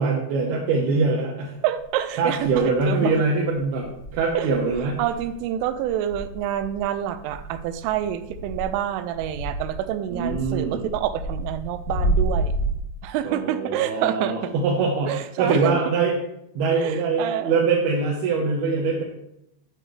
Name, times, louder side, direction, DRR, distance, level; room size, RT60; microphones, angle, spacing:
voice 1, 0.0-1.6 2.2-5.0 10.1-10.9 13.2-16.2 16.5-19.0, right 4 dB, 70° right, -3 dB, 2.7 m, -23 dB
voice 2, 1.6-3.2 4.3-4.5 5.0-12.5 13.0-14.5 15.1-15.8 16.7-17.6, right 11 dB, 85° right, 10 dB, 3.1 m, -27 dB
sound 1, 1.8-1.9 2.4-3.0 3.5-12.7, right 1 dB, 25° left, 2.2 m, -30 dB
11.0 x 8.5 x 3.3 m, 0.79 s
omnidirectional pair, 5.6 m